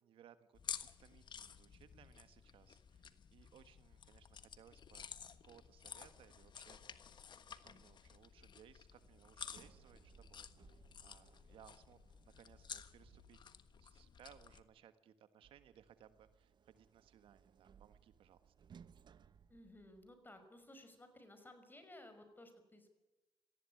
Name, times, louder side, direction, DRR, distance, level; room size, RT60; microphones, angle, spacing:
voice 1, 0.0-0.7 1.0-5.1 5.4-12.0 12.2-18.5, right 9 dB, 80° right, 11 dB, 1.5 m, -64 dB
sound 1, 0.5-14.6, left 7 dB, 60° left, 1.4 m, -53 dB
Sliding door, 9.0-13.8 15.4-20.4, right 7 dB, 55° right, 0.8 m, -65 dB
voice 2, 19.5-23.0, left 1 dB, 20° left, 8 dB, 5.6 m, -58 dB
18.5 x 15.0 x 9.8 m, 1.0 s
cardioid pair, 80°, 9 cm